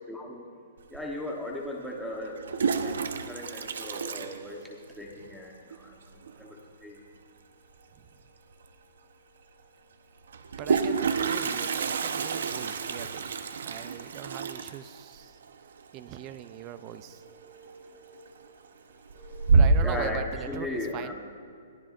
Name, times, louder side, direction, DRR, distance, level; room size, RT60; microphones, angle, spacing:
voice 1, 0.1-0.4 0.9-2.4 2.8-4.6 5.0-5.5 6.4-6.6 6.8-6.9 17.0-18.1 19.2-21.1, left 1 dB, ahead, -3 dB, 1.0 m, -37 dB
Toilet flush, 0.9-1.0 2.2-5.1 5.3-5.4 5.7-5.8 6.1-6.5 8.2-8.3 8.6-8.7 10.3-17.0 17.3-17.7 18.1-18.7 19.1-20.1, right 4 dB, 75° right, 0.9 m, -28 dB
voice 2, 10.6-13.3 13.6-15.4 15.9-17.2 19.5-21.1, right 11 dB, 20° right, 12 dB, 0.5 m, -40 dB
22.0 x 15.5 x 2.5 m, 2.3 s
hypercardioid pair, 175°, 0 cm